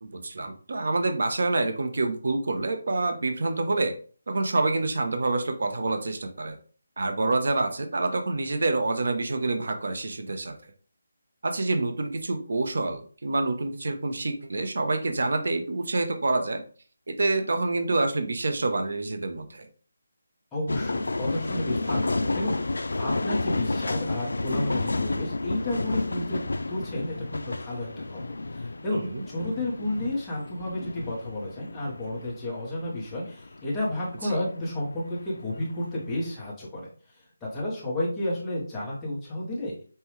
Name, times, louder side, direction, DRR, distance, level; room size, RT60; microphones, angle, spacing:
voice 1, 0.0-3.9 4.3-6.6 7.0-10.5 11.4-16.6 17.1-19.7 28.9-29.2 34.2-34.4, right 2 dB, 55° right, 6 dB, 0.8 m, -27 dB
voice 2, 20.5-29.0 29.3-39.8, left 1 dB, 5° left, -6 dB, 0.8 m, -32 dB
sound 1, 20.7-34.7 35.1-36.5, left 2 dB, 85° left, 0.3 m, -31 dB
5.5 x 2.3 x 3.1 m, 0.42 s
hypercardioid pair, 175°, 0 cm